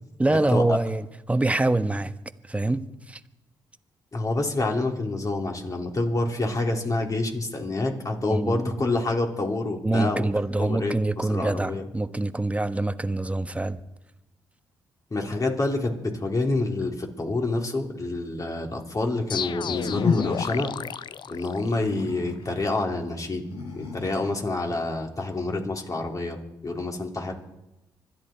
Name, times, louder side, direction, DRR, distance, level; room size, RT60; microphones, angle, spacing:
voice 1, 0.2-2.1 2.5-3.2 8.3-8.6 9.8-13.8, right 2 dB, 15° right, 1.2 m, -25 dB
voice 2, 4.1-10.3 10.7-11.8 15.1-20.7 21.3-23.4 23.7-26.4 26.6-27.3, left 2 dB, 40° left, 3.5 m, -27 dB
sound 1, 19.3-22.1, left 7 dB, 55° left, 0.6 m, -29 dB
Animal, 19.7-20.8 21.6-22.7 23.4-24.5, left 2 dB, 80° left, 4.2 m, -40 dB
25.5 x 10.5 x 4.5 m
hypercardioid pair, 50°, 9 cm